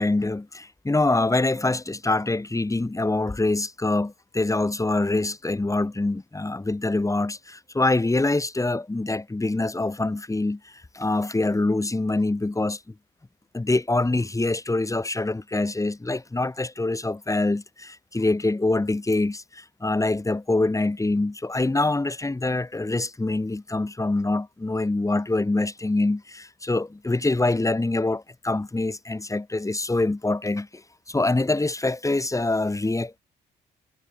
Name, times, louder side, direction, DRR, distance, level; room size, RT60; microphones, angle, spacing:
voice 1, 0.0-10.6 10.9-12.8 13.5-30.8 31.1-33.2, left 2 dB, 15° left, 3.7 m, -25 dB
cardioid pair, 90°, 20 cm